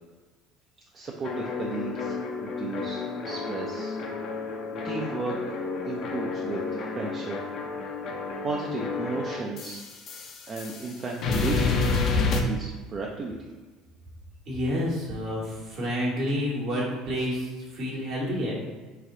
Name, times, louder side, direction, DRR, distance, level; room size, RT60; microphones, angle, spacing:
voice 1, 0.9-4.0 4.8-5.4 5.8-7.4 8.4-10.0 10.4-13.5, right 3 dB, 40° right, -1 dB, 0.5 m, -34 dB
sound 1, 1.2-11.0 11.2-12.4, left 4 dB, 55° left, 0.5 m, -30 dB
voice 2, 14.5-17.5 17.7-18.6, equal, 55° right, -4 dB, 1.3 m, -29 dB
3.3 x 2.3 x 3.7 m, 1.3 s
hypercardioid pair, 70°, 0 cm